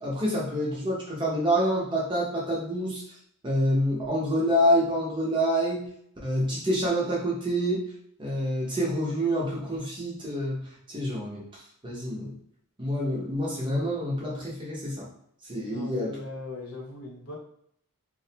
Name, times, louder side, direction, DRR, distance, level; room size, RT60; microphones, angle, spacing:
voice 1, 0.0-3.0 3.4-5.9 6.2-7.9 8.2-11.4 11.8-12.3 12.8-15.1 15.5-16.1, equal, 20° right, -4 dB, 0.6 m, -27 dB
voice 2, 15.7-17.4, left 2 dB, 70° left, -1 dB, 0.7 m, -39 dB
2.4 x 2.1 x 2.8 m, 0.68 s
head